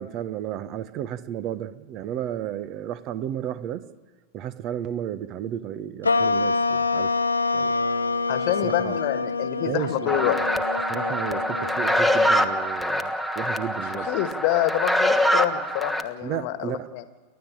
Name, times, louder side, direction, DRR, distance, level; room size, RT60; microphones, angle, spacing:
voice 1, 0.0-3.8 4.3-7.1 7.5-7.8 8.6-9.0 9.6-10.5 10.9-14.1 16.2-16.9, right 10 dB, 40° right, 15 dB, 1.1 m, -33 dB
sound 1, 6.0-12.7, left 3 dB, 80° left, 0.8 m, -26 dB
voice 2, 8.3-10.4 13.9-17.0, left 13 dB, 45° left, 12 dB, 1.6 m, -27 dB
sound 2, 10.1-16.0, equal, 5° right, 1.4 m, -24 dB
29.5 x 12.0 x 8.9 m, 1.4 s
figure-of-eight pair, 90°, 0 cm